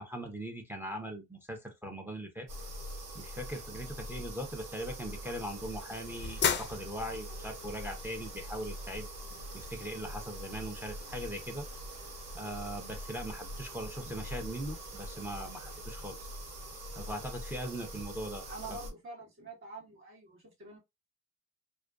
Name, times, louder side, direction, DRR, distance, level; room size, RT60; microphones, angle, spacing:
voice 1, 0.0-2.5 3.1-9.1 9.5-11.7 12.3-16.2 16.9-18.4, equal, 5° right, 0.6 m, -40 dB
sound 1, 2.5-18.9, right 1 dB, 60° right, 0.9 m, -43 dB
sound 2, 5.0-15.8, left 7 dB, 40° left, 0.4 m, -42 dB
voice 2, 18.5-20.8, right 3 dB, 40° right, 1.5 m, -46 dB
2.4 x 2.3 x 2.3 m
cardioid pair, 90°, 30 cm